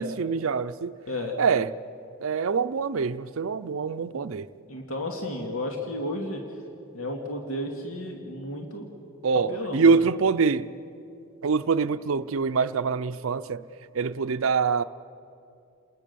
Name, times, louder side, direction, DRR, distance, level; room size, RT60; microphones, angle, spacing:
voice 1, 0.0-1.0 1.4-1.7 2.2-4.5 9.2-10.7 11.4-13.6 13.9-14.8, right 5 dB, 70° right, 0.5 m, -24 dB
voice 2, 4.7-6.4 6.9-8.9 9.5-10.0, left 1 dB, 75° left, 2.2 m, -33 dB
29.0 x 20.0 x 6.9 m
head